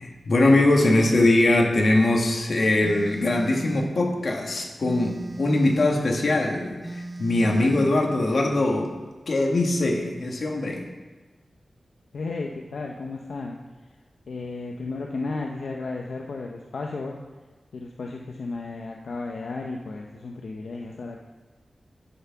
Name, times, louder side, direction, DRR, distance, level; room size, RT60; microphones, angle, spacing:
voice 1, 0.0-9.0 9.3-10.8, left 2 dB, 55° left, 1 dB, 1.6 m, -22 dB
Telephone, 2.8-4.0 4.8-6.0 6.8-8.0, right 2 dB, 15° right, 0.7 m, -36 dB
voice 2, 12.1-13.6 14.3-17.2 17.7-21.2, left 3 dB, 75° left, 1 dB, 0.7 m, -33 dB
11.5 x 6.0 x 5.7 m, 1.3 s
wide cardioid pair, 135°, 0 cm